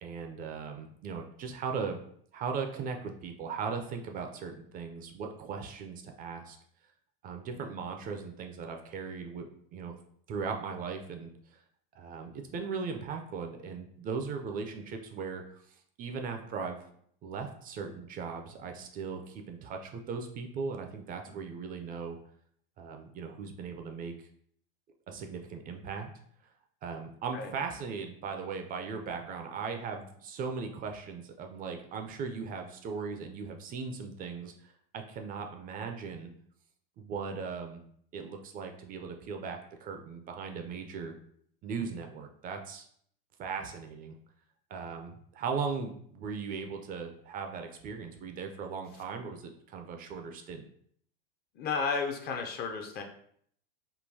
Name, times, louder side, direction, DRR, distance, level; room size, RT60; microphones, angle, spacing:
voice 1, 0.0-2.0 2.3-6.6 7.2-9.5 9.7-9.9 10.3-11.3 12.0-15.4 16.0-16.8 17.2-22.2 22.8-24.1 25.1-26.1 26.8-36.3 37.0-37.8 38.1-41.2 41.6-42.9 43.4-44.2 44.7-50.6, right 5 dB, 30° right, 4 dB, 0.4 m, -38 dB
voice 2, 51.6-53.0, left 5 dB, 35° left, 4 dB, 0.4 m, -32 dB
3.7 x 2.2 x 2.6 m, 0.64 s
hypercardioid pair, 95°, 30 cm